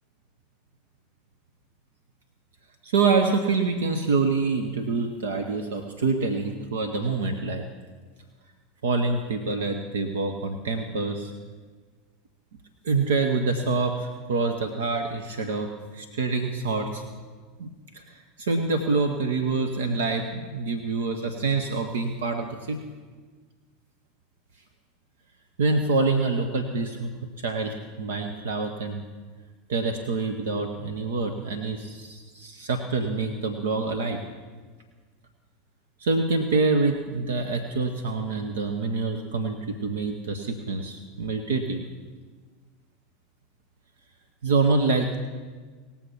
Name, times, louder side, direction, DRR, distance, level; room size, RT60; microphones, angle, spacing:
voice 1, 2.8-7.6 8.8-11.3 12.8-17.0 17.6-22.8 25.6-27.1 27.4-29.0 29.7-34.2 36.0-41.8 44.4-45.2, right 3 dB, 70° right, 5 dB, 0.9 m, -26 dB
19.0 x 7.1 x 5.9 m, 1.5 s
figure-of-eight pair, 80°, 0 cm